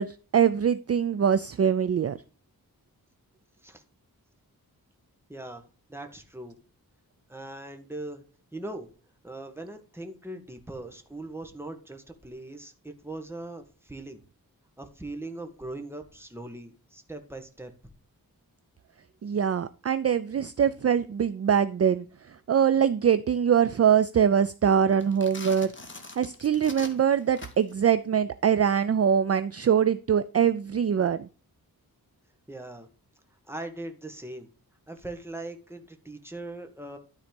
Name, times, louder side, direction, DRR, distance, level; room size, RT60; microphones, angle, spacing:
voice 1, 0.0-2.2 19.2-22.0 22.5-25.7 26.2-31.2, right 8 dB, 45° right, 14 dB, 0.4 m, -23 dB
voice 2, 5.3-5.6 5.9-6.6 7.3-8.2 8.5-8.9 9.2-14.2 14.8-17.7 32.5-32.9 33.5-34.5 34.9-37.0, right 2 dB, 5° right, 5 dB, 1.5 m, -40 dB
sound 1, 24.9-27.8, left 3 dB, 35° left, 1.6 m, -43 dB
12.5 x 4.2 x 5.2 m, 0.36 s
wide cardioid pair, 105°, 36 cm